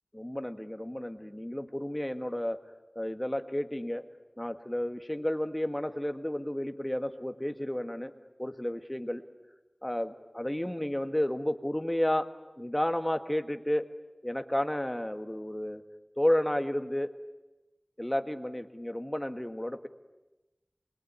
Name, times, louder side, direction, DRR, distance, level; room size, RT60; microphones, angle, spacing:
voice 1, 0.1-2.6 2.9-4.1 4.4-8.1 8.4-9.2 9.8-12.3 12.6-13.9 14.2-15.8 16.2-17.1 18.0-19.9, left 1 dB, 15° left, 8 dB, 1.7 m, -32 dB
26.5 x 22.0 x 9.6 m, 1.1 s
wide cardioid pair, 50°, 0 cm